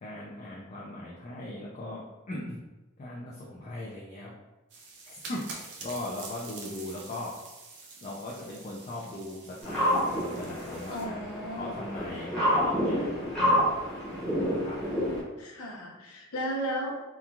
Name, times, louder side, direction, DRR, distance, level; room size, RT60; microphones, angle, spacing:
voice 1, 0.0-2.6 3.0-4.3 5.1-5.4 5.8-7.3 8.0-11.2 11.6-13.1 13.4-13.7 14.5-14.8, left 1 dB, 30° left, -4 dB, 0.3 m, -39 dB
sound 1, 4.7-11.1, right 3 dB, 50° right, 0.5 m, -46 dB
sound 2, 9.6-15.2, equal, ahead, 0.8 m, -28 dB
voice 2, 10.9-11.9 15.4-17.1, equal, 85° left, -1 dB, 0.6 m, -35 dB
2.9 x 2.2 x 2.4 m, 1.1 s
head